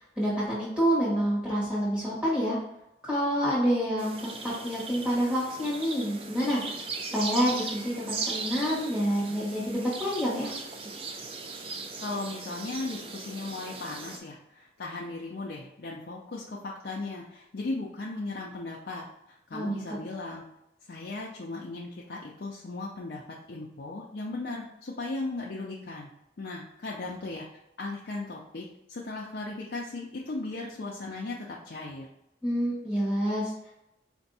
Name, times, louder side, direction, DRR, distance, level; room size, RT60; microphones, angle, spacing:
voice 1, 0.1-2.6 3.0-6.7 7.1-10.5 19.5-19.8 32.4-33.7, equal, 5° right, -9 dB, 1.3 m, -28 dB
sound 1, 4.0-14.2, right 4 dB, 30° right, 0.4 m, -38 dB
voice 2, 12.0-20.4 20.9-26.1 26.4-27.5 27.8-32.1, left 2 dB, 55° left, -3 dB, 0.5 m, -37 dB
4.4 x 2.6 x 4.0 m, 0.86 s
head